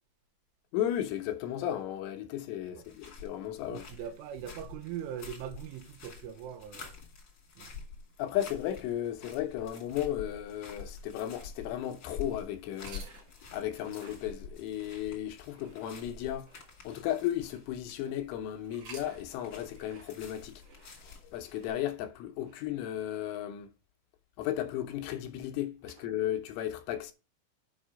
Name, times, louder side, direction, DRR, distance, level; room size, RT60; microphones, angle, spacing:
voice 1, 0.7-3.9 8.2-13.1 13.5-16.5 16.8-20.5 21.0-23.7 24.4-27.1, left 11 dB, 80° left, 3.1 m, -35 dB
sound 1, 2.8-21.7, left 5 dB, 35° left, 1.8 m, -48 dB
voice 2, 3.7-6.9 7.6-7.7, right 9 dB, 80° right, 3.4 m, -41 dB
sound 2, 12.7-18.1 18.6-22.6, right 4 dB, 50° right, 2.7 m, -55 dB
8.1 x 5.3 x 5.0 m
omnidirectional pair, 5.9 m